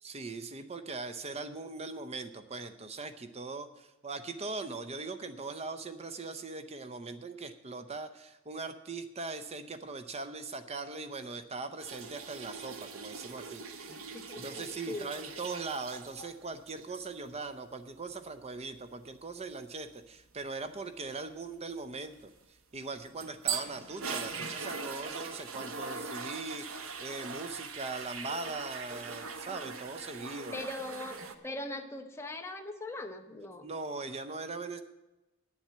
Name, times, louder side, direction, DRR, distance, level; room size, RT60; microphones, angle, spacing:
voice 1, 0.0-13.6 14.4-22.3 22.7-30.6 33.6-34.8, right 3 dB, 30° right, 9 dB, 0.7 m, -40 dB
sound 1, 11.8-16.4 16.7-17.0 22.8-31.3, right 5 dB, 70° right, 1.1 m, -41 dB
voice 2, 13.9-15.1 30.5-33.7, left 2 dB, 10° left, 4 dB, 1.1 m, -41 dB
9.5 x 7.4 x 9.1 m, 1.0 s
head